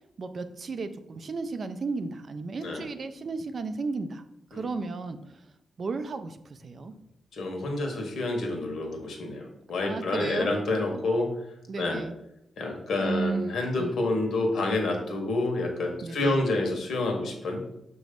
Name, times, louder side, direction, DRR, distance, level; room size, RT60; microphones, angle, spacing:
voice 1, 0.2-4.2 4.5-5.4 5.8-6.9 9.8-10.5 10.9-11.0 11.7-12.1 13.0-13.4 13.8-13.9 16.0-16.4, right 4 dB, 50° right, 10 dB, 0.5 m, -34 dB
voice 2, 7.3-11.3 11.8-12.0 12.6-17.6, left 2 dB, 70° left, 3 dB, 1.4 m, -28 dB
6.8 x 3.1 x 5.1 m, 0.81 s
wide cardioid pair, 110°, 0 cm